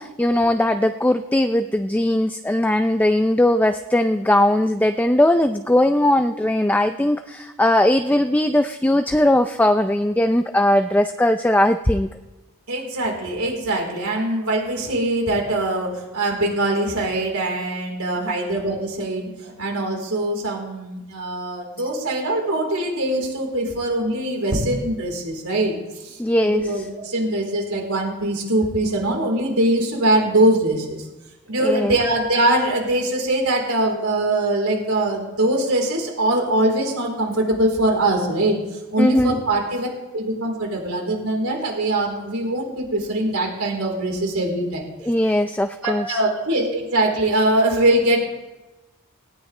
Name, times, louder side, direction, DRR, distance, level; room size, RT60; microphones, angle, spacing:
voice 1, 0.0-12.1 26.2-26.8 31.6-32.0 39.0-39.4 45.0-46.2, left 1 dB, 10° left, 7 dB, 0.4 m, -19 dB
voice 2, 12.7-25.7 26.0-31.1 31.5-38.6 38.9-39.9 40.1-44.9 45.8-48.2, right 1 dB, 80° right, 0 dB, 4.0 m, -22 dB
18.5 x 18.5 x 3.3 m, 1.1 s
head